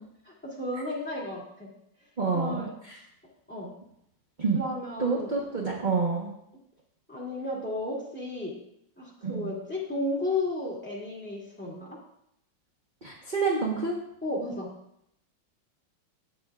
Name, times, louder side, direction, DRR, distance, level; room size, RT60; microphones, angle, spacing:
voice 1, 0.4-1.7 2.3-2.7 3.5-3.7 4.5-5.3 7.1-8.5 9.0-12.0 14.2-14.7, left 2 dB, 5° left, -4 dB, 2.5 m, -33 dB
voice 2, 2.2-3.0 4.4-4.6 5.0-6.3 9.2-9.5 13.0-13.9, right 4 dB, 30° right, -2 dB, 1.1 m, -28 dB
12.5 x 9.0 x 2.5 m, 0.75 s
omnidirectional pair, 2.1 m